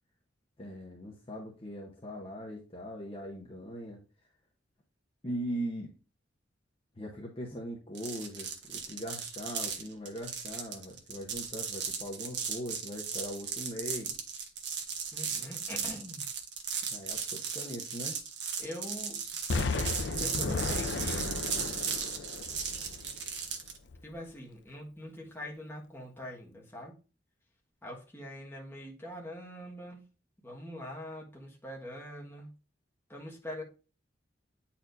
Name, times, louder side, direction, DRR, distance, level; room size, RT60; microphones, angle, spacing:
voice 1, 0.6-4.0 5.2-5.9 6.9-14.2 16.9-18.2, equal, 30° left, -2 dB, 0.9 m, -40 dB
sound 1, 7.9-23.8, right 6 dB, 65° right, 1.0 m, -36 dB
voice 2, 15.1-16.2 18.6-19.2 20.2-21.4 24.0-26.9 27.8-30.0 30.4-32.5 33.1-33.6, left 1 dB, 10° left, -3 dB, 1.4 m, -43 dB
Explosion, 19.5-23.4 23.9-24.0, left 3 dB, 70° left, 0.5 m, -34 dB
8.9 x 4.3 x 2.6 m, 0.34 s
head